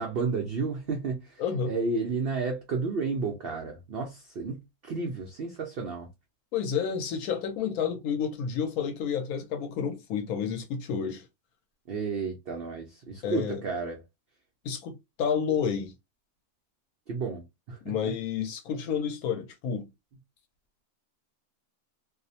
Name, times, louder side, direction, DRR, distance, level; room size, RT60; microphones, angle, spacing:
voice 1, 0.0-6.1 11.9-14.0 17.1-17.9, right 4 dB, 85° right, 0.5 m, -32 dB
voice 2, 1.4-1.7 6.5-11.2 13.2-13.6 14.6-15.9 17.8-19.9, left 7 dB, 75° left, 1.0 m, -30 dB
2.6 x 2.0 x 2.6 m
omnidirectional pair, 1.6 m